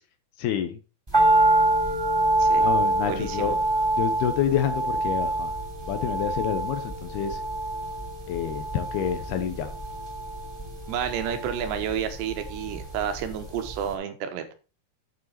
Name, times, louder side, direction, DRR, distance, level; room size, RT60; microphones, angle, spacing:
voice 1, 0.4-0.8 2.5-3.6 4.0-5.5 5.9-7.4 8.3-9.7, left 9 dB, 75° left, 8 dB, 2.7 m, -28 dB
sound 1, 1.1-13.4 13.7-13.8, right 2 dB, 5° right, 2.7 m, -25 dB
voice 2, 3.1-3.6 10.9-14.4, right 9 dB, 80° right, 8 dB, 3.4 m, -30 dB
8.8 x 6.9 x 4.5 m, 0.31 s
omnidirectional pair, 5.1 m